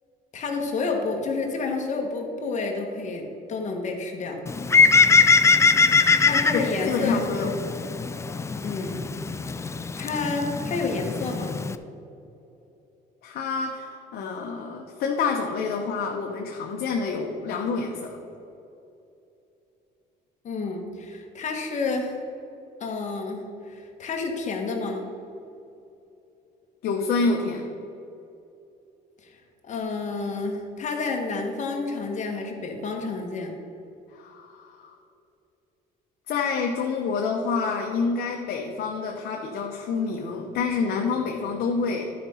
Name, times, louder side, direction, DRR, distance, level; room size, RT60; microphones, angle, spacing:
voice 1, 0.3-4.4 6.2-7.5 8.6-9.0 10.0-11.6 20.4-22.2 22.8-25.0 29.2-29.4 29.6-33.5, left 3 dB, 45° left, 2 dB, 1.5 m, -30 dB
Bird, 4.5-11.8, left 4 dB, 15° left, 0.4 m, -22 dB
voice 2, 6.5-7.5 13.2-18.1 26.8-27.7 34.1-34.9 36.3-42.1, left 4 dB, 70° left, 1 dB, 1.0 m, -27 dB
11.0 x 5.1 x 5.7 m, 2.8 s
cardioid pair, 110°, 17 cm